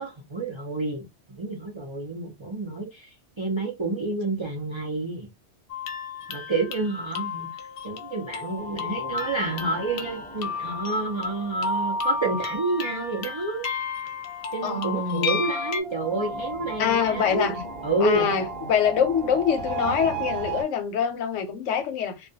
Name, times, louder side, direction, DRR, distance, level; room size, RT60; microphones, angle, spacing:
voice 1, 0.0-5.3 6.3-7.5 7.8-13.7 14.5-18.3, right 3 dB, 40° right, 0.4 m, -29 dB
sound 1, 5.7-15.8, left 4 dB, 60° left, 0.6 m, -33 dB
sound 2, 8.6-13.9 15.4-20.6, right 3 dB, 55° right, 0.9 m, -36 dB
voice 2, 14.6-15.4 16.8-17.5 18.0-22.3, left 7 dB, 90° left, 1.0 m, -25 dB
2.3 x 2.2 x 2.6 m
omnidirectional pair, 1.2 m